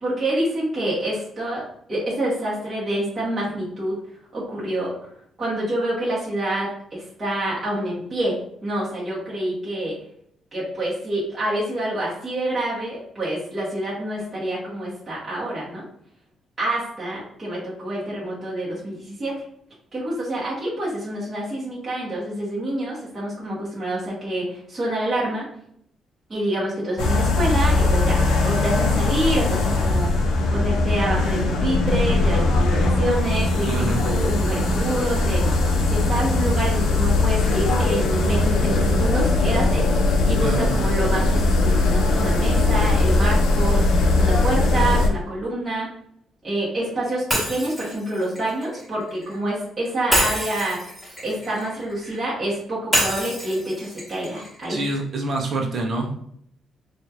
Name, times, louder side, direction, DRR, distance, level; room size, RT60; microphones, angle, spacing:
voice 1, 0.0-4.0 4.3-4.9 5.4-9.9 10.5-15.8 16.6-19.3 19.9-25.5 26.3-35.4 35.9-39.9 40.2-45.9 46.4-50.8 51.2-54.8, right 1 dB, 20° right, -8 dB, 1.3 m, -27 dB
sound 1, 27.0-45.1, left 2 dB, 85° left, 0.6 m, -20 dB
voice 2, 33.6-34.0 40.4-40.8 54.7-56.1, right 2 dB, 40° right, 1 dB, 0.7 m, -26 dB
Shatter, 47.3-49.4 50.1-52.2 52.9-55.0, equal, ahead, 1.5 m, -27 dB
4.7 x 2.4 x 2.9 m, 0.68 s
cardioid pair, 165°, 0 cm